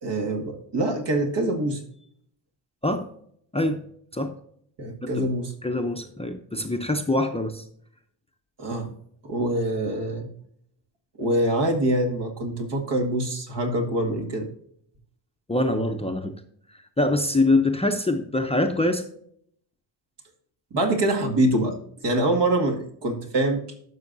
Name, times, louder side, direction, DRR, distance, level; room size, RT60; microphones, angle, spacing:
voice 1, 0.0-1.8 4.8-5.5 8.6-8.9 9.2-10.3 11.2-14.5 20.7-21.7 22.0-23.6, right 1 dB, 60° right, 3 dB, 2.1 m, -24 dB
voice 2, 5.6-7.6 15.5-16.3 17.0-19.0, left 2 dB, 15° left, 5 dB, 0.7 m, -24 dB
12.0 x 6.4 x 2.7 m, 0.65 s
cardioid pair, 125°, 48 cm